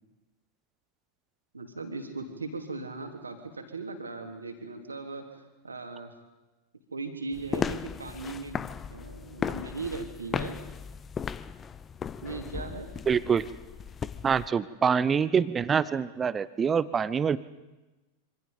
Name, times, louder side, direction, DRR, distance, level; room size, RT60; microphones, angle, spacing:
voice 1, 1.5-6.1 6.9-8.6 8.9-10.6 12.2-12.9, right 3 dB, 80° right, 4 dB, 3.1 m, -38 dB
sound 1, 7.3-14.5, left 7 dB, 20° left, 0.7 m, -36 dB
voice 2, 13.1-13.4 14.2-17.4, right 6 dB, 20° right, 17 dB, 0.9 m, -25 dB
26.5 x 25.5 x 5.3 m, 1.1 s
figure-of-eight pair, 90°, 0 cm